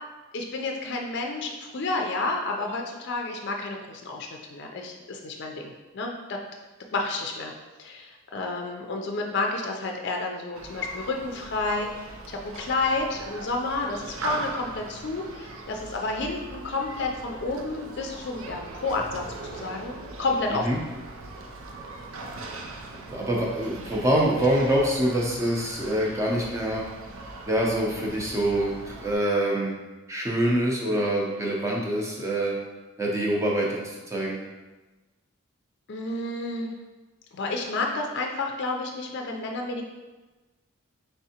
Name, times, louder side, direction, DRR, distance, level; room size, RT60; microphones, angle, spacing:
voice 1, 0.3-6.4 6.9-7.5 7.8-11.9 12.3-20.7 35.9-36.7 37.3-39.8, left 3 dB, 50° left, 2 dB, 0.4 m, -30 dB
Human group actions, 10.5-29.2, right 2 dB, 70° right, 0.5 m, -40 dB
voice 2, 23.1-26.9 27.5-29.7 30.1-32.6 33.0-33.8 34.1-34.4, right 1 dB, 15° right, -2 dB, 0.6 m, -25 dB
4.7 x 3.4 x 2.8 m, 1.2 s
head